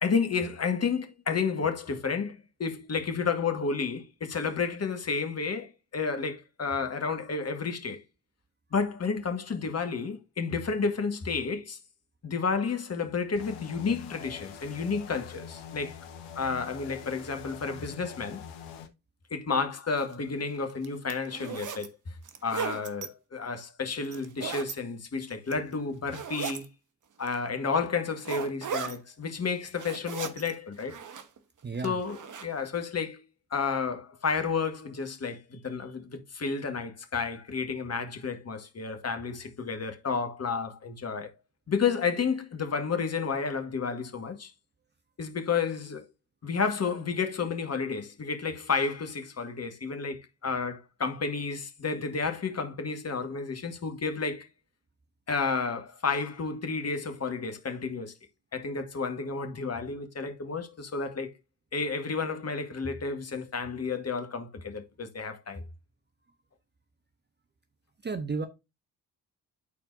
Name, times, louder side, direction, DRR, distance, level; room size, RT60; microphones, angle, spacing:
voice 1, 0.0-8.0 8.7-11.8 12.2-16.0 16.3-18.4 19.3-21.9 22.4-26.6 27.2-30.9 31.8-33.2 33.5-41.3 41.7-44.5 45.2-46.0 46.4-54.5 55.3-58.1 58.5-61.3 61.7-65.6, left 5 dB, 35° left, 1.6 m, -31 dB
sound 1, 13.4-18.9, left 8 dB, 65° left, 1.2 m, -44 dB
sound 2, 20.0-20.1 20.7-21.9 22.2-23.1 24.0-24.7 25.3-25.7 26.1-26.7 27.3-27.4 28.2-29.0 29.5-30.5 30.8-31.4 31.8-32.5, right 7 dB, 40° right, 1.2 m, -36 dB
voice 2, 31.6-32.0 68.0-68.5, right 4 dB, 25° right, 0.9 m, -32 dB
13.0 x 4.4 x 2.6 m
figure-of-eight pair, 45°, 45 cm